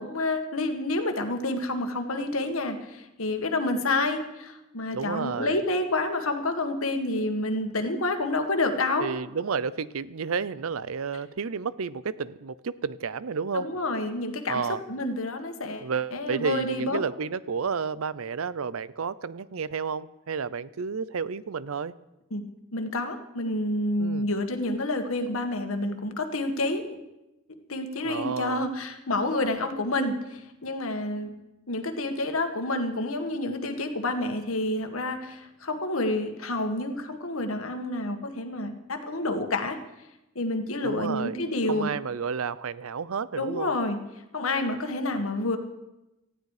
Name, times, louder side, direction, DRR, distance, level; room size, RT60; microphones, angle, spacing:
voice 1, 0.0-9.1 13.5-17.0 22.3-22.4 22.7-27.0 27.7-31.3 31.7-39.8 40.4-41.9 43.4-44.0 44.3-45.6, left 2 dB, 85° left, 6 dB, 1.8 m, -29 dB
voice 2, 4.9-5.6 9.0-13.7 14.5-14.8 15.8-21.9 24.0-24.3 28.0-28.7 40.8-41.4 41.7-43.7, right 5 dB, 90° right, 19 dB, 0.6 m, -31 dB
18.5 x 14.5 x 4.9 m, 0.95 s
head